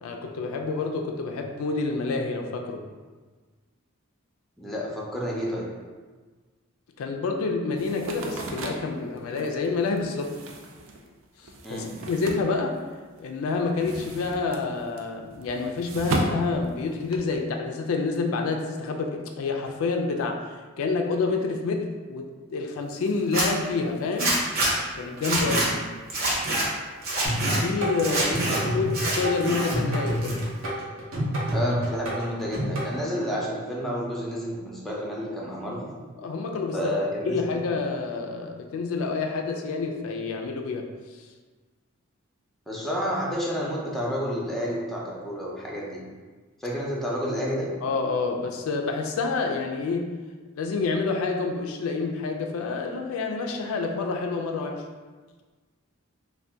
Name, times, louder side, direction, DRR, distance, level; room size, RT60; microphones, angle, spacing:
voice 1, 0.0-2.9 7.0-10.3 11.4-12.8 13.2-24.3 25.0-25.6 27.4-28.3 28.6-30.4 36.2-36.9 37.2-40.9 47.8-50.2 50.6-54.8, left 4 dB, 85° left, 3 dB, 0.3 m, -28 dB
voice 2, 4.6-5.7 11.6-11.9 25.4-25.7 28.1-28.7 31.5-35.9 36.7-37.6 42.7-46.0 46.6-47.7, equal, ahead, -5 dB, 0.5 m, -30 dB
sound 1, 7.8-13.2 13.5-17.4, right 2 dB, 70° right, 0.4 m, -35 dB
Zipper (clothing), 23.2-23.5 24.2-24.7 25.2-25.7 26.1-26.6 27.0-27.6 28.0-28.6 28.9-29.7 30.1-30.7, right 2 dB, 50° right, 0.8 m, -26 dB
sound 2, 27.2-32.9, equal, 90° right, 0.8 m, -29 dB
2.6 x 2.1 x 3.3 m, 1.4 s
head